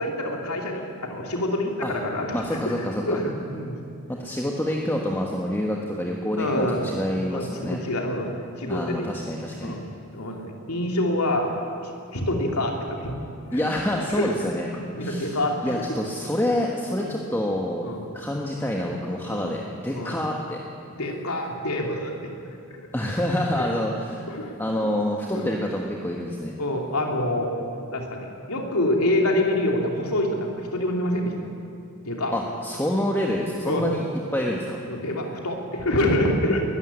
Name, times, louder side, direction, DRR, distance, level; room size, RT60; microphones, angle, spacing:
voice 1, 0.0-3.8 6.4-6.8 7.3-8.3 8.6-9.1 9.6-9.8 10.1-11.5 11.8-13.1 13.5-13.6 14.2-14.3 14.7-15.7 17.0-17.1 17.8-18.0 19.3-19.5 19.9-20.2 21.0-22.3 22.7-22.9 23.6-23.7 24.3-24.5 25.3-25.4 26.6-27.5 27.9-31.5 32.0-32.3 33.6-33.8 34.9-36.6, left 1 dB, 90° left, 1 dB, 3.0 m, -26 dB
voice 2, 2.3-3.2 4.1-7.8 8.7-9.8 13.5-14.7 15.0-15.4 15.6-20.6 22.9-24.3 24.6-26.6 32.3-34.0 34.3-34.8, left 1 dB, 10° left, -1 dB, 1.5 m, -27 dB
21.0 x 14.5 x 9.8 m, 2.5 s
head